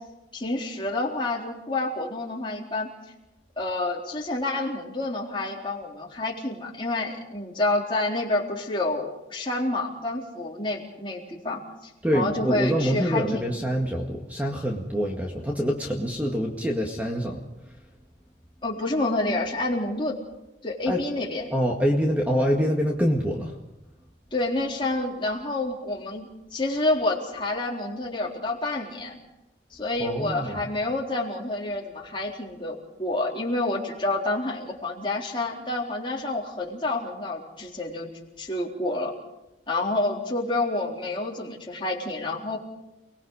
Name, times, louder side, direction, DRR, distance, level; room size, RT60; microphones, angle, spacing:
voice 1, 0.3-2.9 3.6-13.5 18.6-20.2 20.6-21.4 24.3-29.2 29.7-38.1 38.4-39.1 39.7-42.6, left 2 dB, 25° left, -2 dB, 4.1 m, -28 dB
voice 2, 12.0-17.4 20.9-21.0 21.5-23.5 30.0-30.6, equal, 10° right, 0 dB, 1.9 m, -25 dB
30.0 x 20.5 x 5.0 m, 0.94 s
head